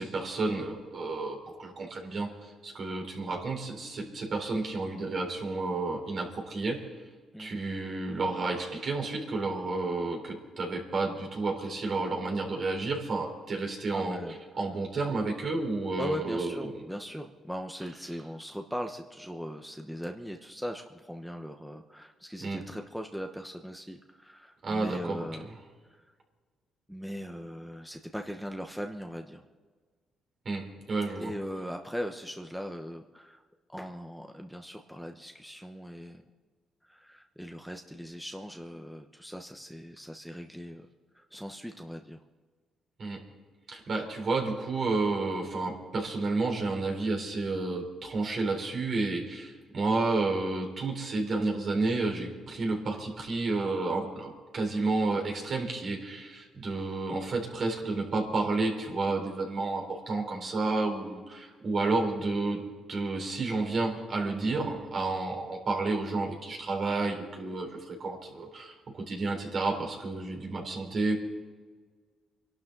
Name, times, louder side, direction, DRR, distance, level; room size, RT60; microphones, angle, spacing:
voice 1, 0.0-6.8 7.4-14.2 14.6-16.7 22.4-22.6 24.6-25.3 30.5-31.3 43.0-43.2 43.7-62.6 62.9-71.2, right 3 dB, 50° right, 2 dB, 4.0 m, -31 dB
voice 2, 13.9-14.4 16.0-25.5 25.9-26.0 26.9-29.4 31.2-33.4 33.7-36.2 36.8-40.9 41.1-42.2, equal, ahead, 3 dB, 1.0 m, -39 dB
25.0 x 12.0 x 3.9 m, 1.5 s
cardioid pair, 90°, 0 cm